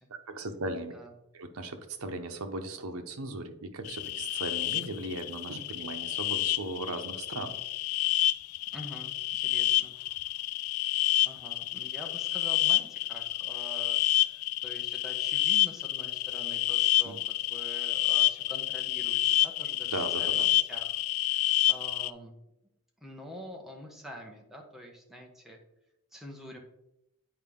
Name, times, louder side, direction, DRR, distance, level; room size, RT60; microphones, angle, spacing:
voice 1, 0.3-0.9 1.3-7.6 17.0-17.2 19.9-20.5, right 2 dB, 85° right, 6 dB, 0.9 m, -37 dB
sound 1, 3.8-22.1, left 14 dB, 85° left, 0.3 m, -29 dB
voice 2, 8.7-9.9 11.2-21.0 21.2-22.4 23.0-25.6 26.1-26.6, equal, ahead, 0 dB, 1.1 m, -46 dB
8.9 x 4.6 x 3.7 m, 0.85 s
head